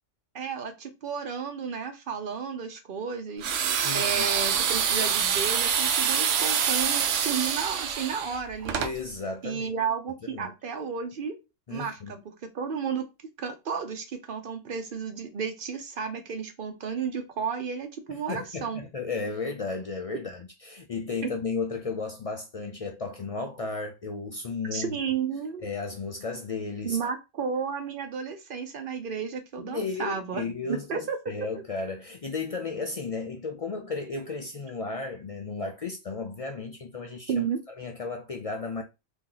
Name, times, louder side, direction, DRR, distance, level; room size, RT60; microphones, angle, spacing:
voice 1, 0.3-3.5 3.9-8.8 9.4-11.4 11.7-13.0 13.4-18.8 21.2-21.3 24.7-25.7 26.8-30.4 30.7-31.3 37.3-37.6, right 6 dB, 55° right, 0.7 m, -32 dB
sound 1, 3.4-8.9, right 7 dB, 80° right, 0.9 m, -26 dB
voice 2, 3.8-4.3 8.8-9.7 10.2-10.5 11.7-12.2 18.1-25.0 25.6-27.0 29.6-37.4 37.8-38.8, left 4 dB, 65° left, 0.3 m, -34 dB
2.8 x 2.6 x 3.8 m
omnidirectional pair, 1.2 m